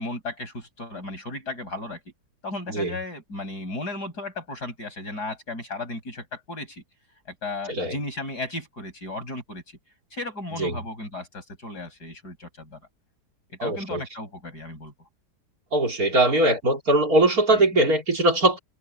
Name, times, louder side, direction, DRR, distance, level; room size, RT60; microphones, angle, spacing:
voice 1, 0.0-2.0 2.4-6.8 7.3-9.8 10.1-12.8 13.5-14.9 17.5-17.6, left 2 dB, 70° left, 8.2 m, -35 dB
voice 2, 13.6-14.0 15.7-18.6, right 1 dB, 60° right, 4.2 m, -21 dB
omnidirectional pair, 1.8 m